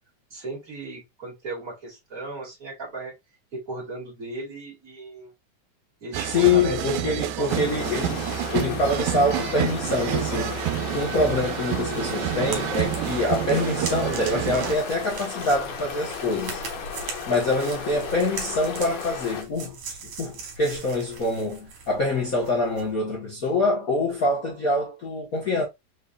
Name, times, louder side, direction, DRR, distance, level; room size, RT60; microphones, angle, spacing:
voice 1, 0.3-3.1 3.5-5.3 6.0-7.7, right 2 dB, 30° right, 2.2 m, -36 dB
sound 1, 6.1-14.8, right 12 dB, 90° right, 2.0 m, -28 dB
voice 2, 6.2-8.2 8.5-10.6 10.9-16.6 17.3-19.8 20.0-25.6, left 2 dB, 85° left, 0.7 m, -25 dB
sound 2, 7.5-19.4, left 6 dB, 70° left, 2.2 m, -35 dB
sound 3, 11.9-22.9, right 5 dB, 70° right, 2.5 m, -40 dB
5.1 x 4.0 x 2.3 m
omnidirectional pair, 3.4 m